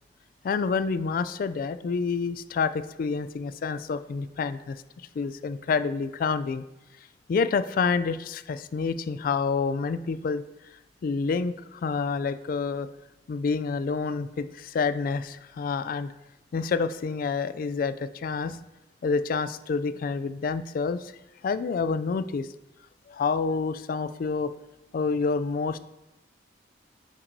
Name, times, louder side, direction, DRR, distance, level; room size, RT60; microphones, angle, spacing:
voice 1, 0.4-4.8 5.2-6.6 7.3-10.4 11.0-12.9 13.3-16.1 16.5-18.6 19.0-21.1 21.4-22.5 23.1-24.5 24.9-25.8, left 5 dB, 50° left, 13 dB, 0.3 m, -28 dB
9.7 x 5.8 x 2.7 m, 0.96 s
head